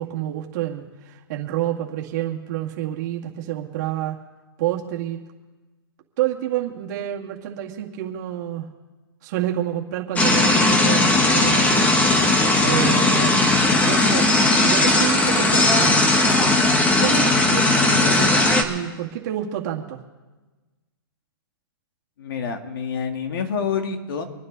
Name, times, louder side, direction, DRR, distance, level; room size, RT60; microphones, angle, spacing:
voice 1, 0.0-4.2 4.6-5.2 6.2-8.7 9.2-11.9 12.6-13.3 13.7-14.3 14.6-16.0 17.0-20.0, right 12 dB, 45° right, 0 dB, 2.2 m, -28 dB
sound 1, 10.2-18.6, left 2 dB, 10° left, 1.4 m, -18 dB
voice 2, 22.2-24.2, left 6 dB, 65° left, 5 dB, 2.2 m, -27 dB
26.0 x 9.7 x 4.1 m, 1.2 s
hypercardioid pair, 140°, 13 cm